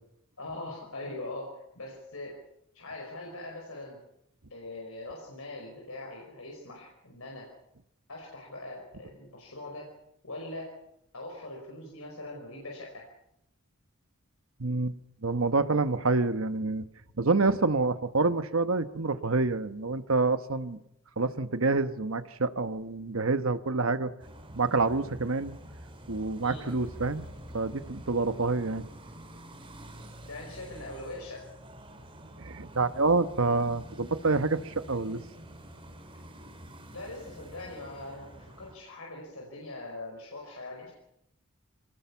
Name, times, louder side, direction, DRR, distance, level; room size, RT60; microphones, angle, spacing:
voice 1, 0.4-2.4 2.7-4.0 4.5-7.5 8.1-9.9 10.2-10.7 11.1-13.0 26.4-26.6 30.3-31.5 36.9-40.9, left 2 dB, 75° left, -1 dB, 5.2 m, -42 dB
voice 2, 14.6-14.9 15.2-16.9 17.2-20.8 21.2-24.1 24.5-25.6 26.1-27.3 27.5-28.8 32.4-35.2, right 3 dB, 65° right, 11 dB, 1.1 m, -27 dB
sound 1, 24.2-38.8, right 1 dB, 25° right, 3.6 m, -47 dB
24.5 x 19.0 x 7.1 m, 0.79 s
head